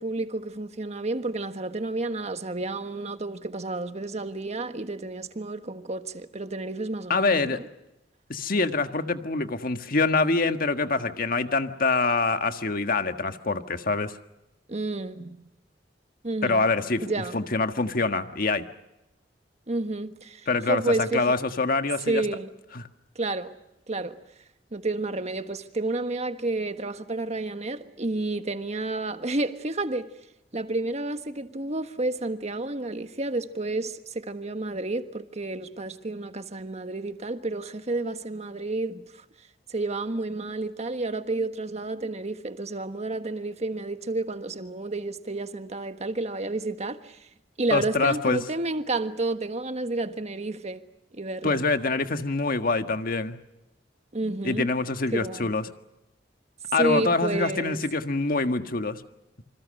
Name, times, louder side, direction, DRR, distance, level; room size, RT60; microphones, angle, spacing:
voice 1, 0.0-7.7 14.7-15.4 16.2-16.6 17.0-17.4 19.7-21.3 22.1-22.5 23.1-23.5 23.9-24.2 24.7-30.1 30.5-39.2 39.7-47.2 47.6-50.8 51.1-51.6 54.1-54.7 55.1-55.5 56.8-57.8, right 2 dB, 40° right, 1.5 m, -30 dB
voice 2, 7.1-7.6 8.3-14.1 16.4-17.0 17.3-18.7 20.5-22.2 22.8-22.9 47.7-48.4 51.4-53.4 54.4-55.6 56.7-59.0, left 3 dB, 50° left, 1.6 m, -25 dB
27.5 x 26.5 x 6.5 m
head